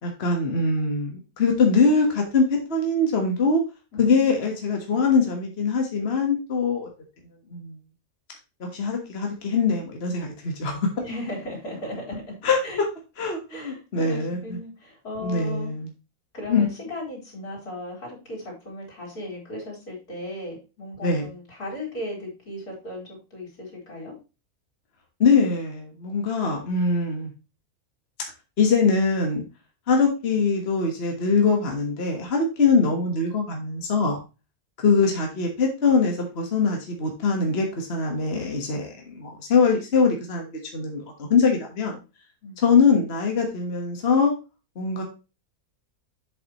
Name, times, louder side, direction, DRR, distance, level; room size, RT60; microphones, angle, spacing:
voice 1, 0.0-3.6 4.0-6.9 7.5-7.8 8.6-10.9 12.4-12.6 13.2-14.6 15.2-15.9 16.5-16.7 21.0-21.3 25.2-27.3 28.6-29.4 29.9-34.2 34.8-41.0 41.3-42.0 42.6-44.3 44.8-45.0, left 4 dB, 45° left, 2 dB, 1.6 m, -22 dB
voice 2, 3.9-4.4 11.0-12.4 12.6-12.8 13.5-15.7 16.3-24.1 42.4-42.8, left 1 dB, 80° left, -3 dB, 4.8 m, -36 dB
7.9 x 7.3 x 3.0 m, 0.29 s
omnidirectional pair, 1.6 m